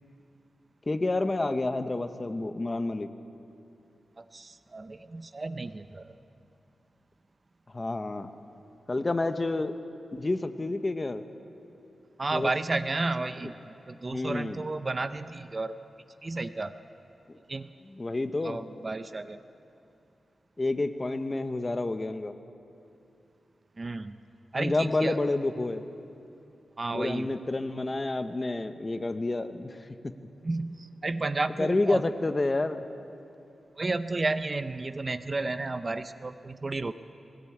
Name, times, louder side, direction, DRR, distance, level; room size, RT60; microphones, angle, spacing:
voice 1, 0.9-3.1 7.7-8.3 8.9-9.7 10.1-11.2 12.3-12.5 14.0-14.6 17.8-18.6 20.6-22.3 24.5-25.8 26.9-30.1 31.6-32.8, left 2 dB, 25° left, 9 dB, 0.9 m, -29 dB
voice 2, 4.2-6.1 12.2-15.7 16.2-16.7 17.5-17.7 18.4-19.4 23.8-24.2 24.5-25.2 26.8-27.3 30.4-32.0 33.8-36.9, right 3 dB, 30° right, 11 dB, 0.6 m, -32 dB
20.5 x 18.0 x 8.6 m, 2.7 s
wide cardioid pair, 140°, 0 cm